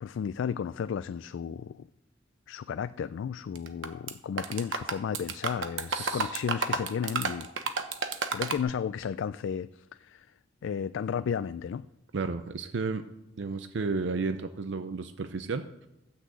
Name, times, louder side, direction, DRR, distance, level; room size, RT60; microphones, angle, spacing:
voice 1, 0.0-1.9 2.5-7.8 8.3-10.3 10.6-11.9, left 7 dB, 75° left, 0.3 m, -33 dB
sound 1, 3.5-4.1 4.4-8.6, right 4 dB, 85° right, 1.0 m, -31 dB
voice 2, 5.9-6.4 12.1-13.0 13.4-15.9, right 4 dB, 70° right, 0.5 m, -33 dB
13.0 x 6.3 x 8.0 m
head